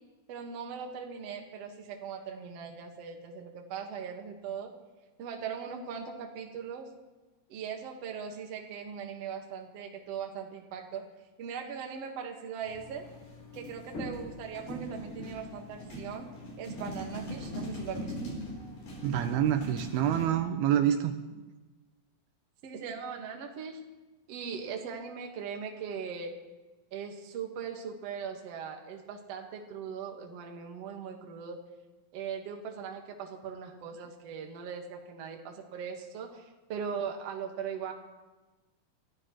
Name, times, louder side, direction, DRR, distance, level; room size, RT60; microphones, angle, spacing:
voice 1, 0.3-4.7 5.2-6.9 7.5-11.1 11.4-13.1 13.5-16.3 16.6-18.1 22.6-23.8 24.3-26.4 26.9-31.6 32.1-37.9, right 6 dB, 55° right, 2 dB, 2.0 m, -40 dB
sound 1, 12.6-20.3, equal, 55° left, 5.5 m, -40 dB
voice 2, 19.0-21.1, right 10 dB, 80° right, 7 dB, 2.6 m, -27 dB
25.5 x 14.5 x 3.1 m, 1.2 s
omnidirectional pair, 4.7 m